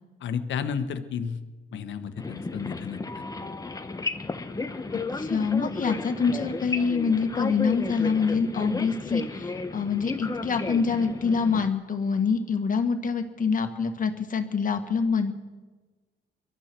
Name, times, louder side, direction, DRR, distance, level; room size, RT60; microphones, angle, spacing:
voice 1, 0.2-1.4 1.7-3.2 5.8-5.9, left 7 dB, 70° left, 9 dB, 1.3 m, -32 dB
sound 1, 2.2-11.7, left 3 dB, 20° left, 1.0 m, -33 dB
voice 2, 5.1-15.3, left 5 dB, 40° left, 6 dB, 1.8 m, -26 dB
23.0 x 13.0 x 4.5 m, 1.3 s
cardioid pair, 90°, 20 cm